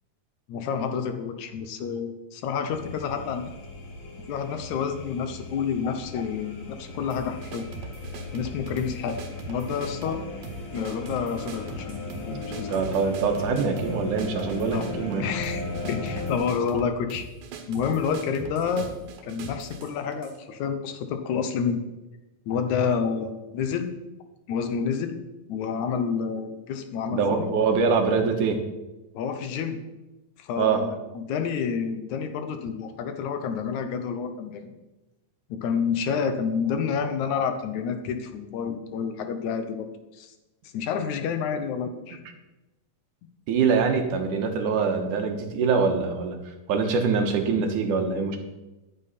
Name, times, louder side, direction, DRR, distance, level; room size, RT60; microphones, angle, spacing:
voice 1, 0.5-3.5 4.2-7.7 8.3-9.2 9.5-10.2 10.7-12.8 14.7-14.9 15.2-15.6 15.9-17.3 17.7-18.9 19.2-21.8 22.5-23.9 24.5-25.2 25.5-27.5 29.1-29.8 30.4-34.7 35.5-40.3 40.7-42.2, left 6 dB, 70° left, 8 dB, 2.3 m, -29 dB
sound 1, 2.7-16.3, left 3 dB, 50° left, 2.4 m, -37 dB
sound 2, 7.1-20.4, right 4 dB, 85° right, 3.0 m, -41 dB
voice 2, 12.3-15.3 27.1-28.6 30.6-30.8 43.5-48.4, right 5 dB, 70° right, 4 dB, 2.7 m, -24 dB
13.5 x 10.5 x 4.3 m, 1.0 s
omnidirectional pair, 3.9 m